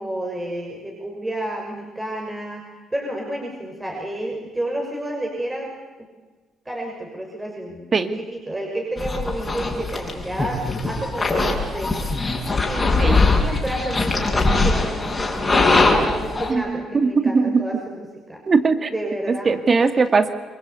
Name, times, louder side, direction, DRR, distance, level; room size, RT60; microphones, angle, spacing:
voice 1, 0.0-2.6 2.9-5.7 6.6-7.9 8.3-18.4 18.9-19.5 19.8-19.9, right 1 dB, 15° right, 0 dB, 6.1 m, -30 dB
sound 1, 9.0-16.5, left 3 dB, 25° left, 6.1 m, -21 dB
voice 2, 16.5-17.6 18.5-18.9 19.3-20.3, right 4 dB, 40° right, 9 dB, 2.3 m, -19 dB
26.0 x 22.0 x 8.5 m, 1.3 s
supercardioid pair, 70°, 0 cm